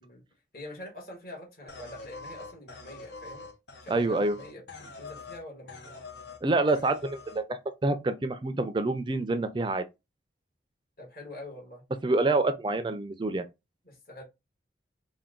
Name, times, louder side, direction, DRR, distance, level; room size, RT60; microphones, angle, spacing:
voice 1, 0.5-3.5 3.8-6.1 11.0-11.8 13.8-14.2, left 1 dB, 50° left, 1.5 m, -45 dB
sound 1, 1.7-5.4 5.7-6.4 6.7-7.4, left 3 dB, 70° left, 0.9 m, -45 dB
voice 2, 3.9-4.4 6.4-9.9 12.0-13.5, right 2 dB, 25° right, 0.4 m, -27 dB
4.3 x 2.2 x 3.7 m
head